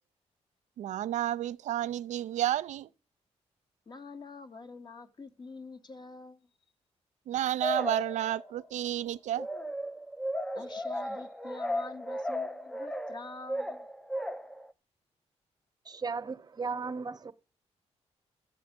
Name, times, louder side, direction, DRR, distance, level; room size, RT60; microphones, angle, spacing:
voice 1, 0.8-2.9 7.3-9.5, right 12 dB, 90° right, 0.5 m, -31 dB
voice 2, 3.9-6.5 10.5-13.9, left 3 dB, 40° left, 1.1 m, -46 dB
sound 1, 7.6-8.7 9.4-14.7, equal, 5° left, 0.5 m, -35 dB
voice 3, 15.8-17.3, right 4 dB, 35° right, 0.8 m, -36 dB
13.5 x 7.9 x 5.2 m
cardioid pair, 95°, 12 cm